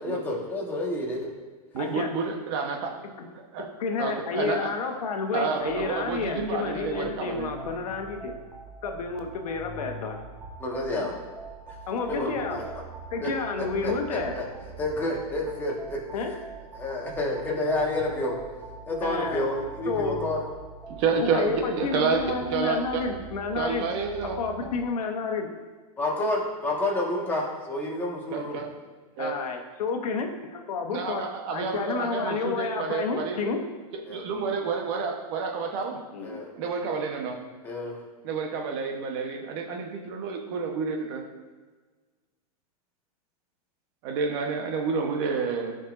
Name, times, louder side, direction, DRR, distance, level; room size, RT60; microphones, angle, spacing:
voice 1, 0.0-1.3 10.6-11.1 11.7-11.8 12.1-12.7 13.2-13.3 13.8-14.4 14.8-16.0 16.8-18.3 18.9-20.4 21.1-21.2 26.0-28.6 34.1-34.2 36.2-36.5 37.6-38.0, left 1 dB, 10° left, -4 dB, 1.6 m, -29 dB
voice 2, 1.7-3.0 3.5-3.7 4.0-4.7 5.3-7.5 21.0-23.0 23.6-24.4 28.3-28.7 29.2-29.3 30.9-33.4 34.1-36.0 36.6-37.4 38.2-41.2 44.0-45.8, right 5 dB, 45° right, 2 dB, 1.1 m, -29 dB
voice 3, 3.8-8.3 8.8-10.2 10.9-11.1 11.9-12.7 13.1-14.3 16.1-16.3 19.0-19.5 19.9-20.2 21.2-23.9 24.2-25.5 29.2-33.6 36.1-36.4, left 4 dB, 75° left, 4 dB, 1.1 m, -30 dB
sound 1, 5.6-24.8, right 3 dB, 10° right, 1.1 m, -43 dB
12.5 x 5.3 x 2.6 m, 1.4 s
supercardioid pair, 150°, 19 cm